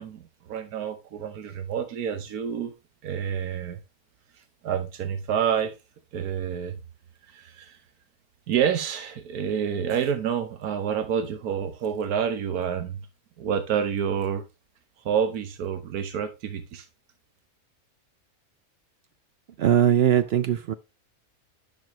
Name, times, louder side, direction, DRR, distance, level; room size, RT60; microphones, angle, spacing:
voice 1, 0.0-2.7 3.0-3.8 4.6-5.7 6.1-6.8 7.3-7.8 8.5-13.1 13.4-14.4 15.0-16.9, right 8 dB, 90° right, 1.4 m, -28 dB
voice 2, 19.6-20.7, right 9 dB, 65° right, 0.6 m, -20 dB
9.2 x 6.0 x 2.9 m
omnidirectional pair, 1.5 m